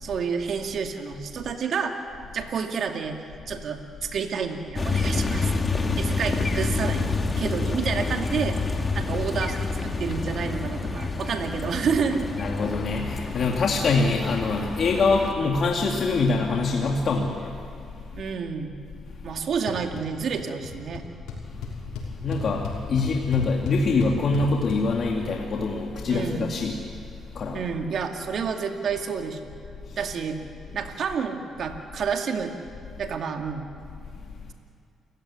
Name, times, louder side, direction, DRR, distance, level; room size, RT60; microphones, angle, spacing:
voice 1, 0.0-1.9 2.3-3.2 3.5-5.5 6.0-7.1 7.4-8.6 8.9-12.3 18.1-18.8 19.2-21.0 26.1-26.5 27.5-29.5 30.0-30.4 30.7-32.6 33.0-33.7, right 6 dB, 60° right, 4 dB, 2.4 m, -29 dB
sound 1, 4.8-15.3, left 3 dB, 25° left, 2.5 m, -28 dB
voice 2, 12.4-17.6 22.2-22.6 22.9-26.7 27.3-27.6, left 3 dB, 55° left, 0 dB, 2.3 m, -24 dB
sound 2, 19.7-20.0 20.3-20.7 20.9-21.0 21.3-24.8, left 5 dB, 90° left, 5.9 m, -34 dB
29.0 x 16.0 x 10.0 m, 2.3 s
cardioid pair, 90°, 0 cm